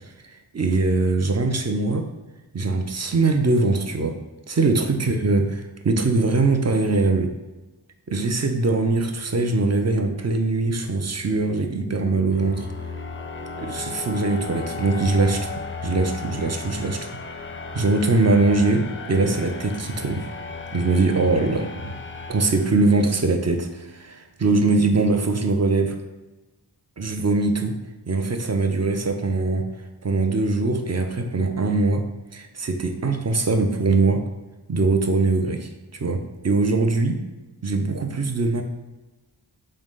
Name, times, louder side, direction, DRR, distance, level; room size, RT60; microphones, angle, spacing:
voice 1, 0.5-2.1 2.5-4.2 4.5-7.3 8.1-12.7 13.6-15.5 15.8-17.1 17.7-20.3 20.7-21.9 22.3-26.0 27.0-27.8 28.1-29.7 30.0-32.0 32.3-34.2 34.7-37.2 37.6-38.6, right 3 dB, 40° right, 5 dB, 0.5 m, -22 dB
sound 1, 10.5-23.4, left 4 dB, 30° left, 0.4 m, -35 dB
3.8 x 2.7 x 3.6 m, 1.1 s
wide cardioid pair, 40°, 43 cm